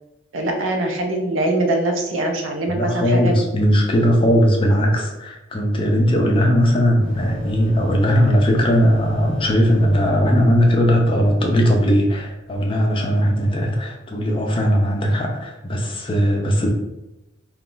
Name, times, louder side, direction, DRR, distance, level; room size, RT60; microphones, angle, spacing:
voice 1, 0.3-3.5, right 2 dB, 85° right, 2 dB, 0.6 m, -22 dB
voice 2, 2.7-16.7, equal, 25° left, 1 dB, 0.4 m, -18 dB
sound 1, 7.0-12.4, equal, 5° left, 0.9 m, -37 dB
2.4 x 2.3 x 3.7 m, 0.95 s
head